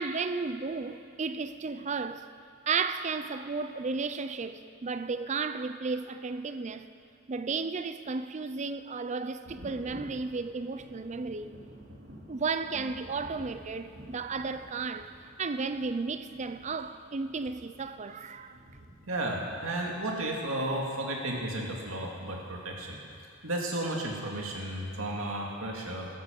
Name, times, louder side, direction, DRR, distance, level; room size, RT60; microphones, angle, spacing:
voice 1, 0.0-2.3 2.7-6.9 7.3-11.6 12.3-18.6, right 4 dB, 35° right, 0.5 m, -33 dB
Thunder, 9.4-20.9 22.2-22.3 22.8-22.9, equal, 65° right, 2.5 m, -51 dB
voice 2, 19.1-23.0 23.4-26.1, right 1 dB, 80° right, 2.2 m, -33 dB
14.0 x 13.5 x 5.2 m
head